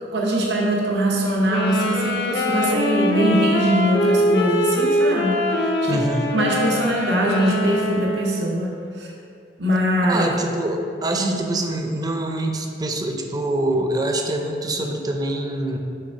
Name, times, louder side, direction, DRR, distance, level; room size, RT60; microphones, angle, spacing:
voice 1, 0.1-6.0 6.3-9.1 9.6-10.3 11.1-11.3, right 1 dB, 75° right, -2 dB, 0.8 m, -22 dB
sound 1, 1.5-8.5, left 1 dB, 65° left, 0.6 m, -23 dB
voice 2, 5.9-6.3 10.1-15.8, right 1 dB, 20° right, 3 dB, 0.5 m, -25 dB
6.8 x 3.4 x 5.3 m, 2.5 s
head